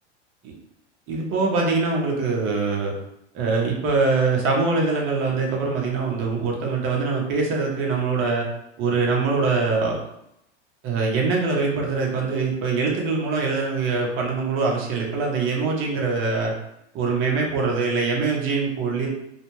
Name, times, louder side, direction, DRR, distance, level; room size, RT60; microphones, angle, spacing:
voice 1, 1.1-2.9 3.3-8.5 8.8-10.0 10.8-16.5 16.9-19.1, right 4 dB, 35° right, -1 dB, 0.8 m, -23 dB
2.4 x 2.1 x 3.0 m, 0.81 s
hypercardioid pair, 95°, 34 cm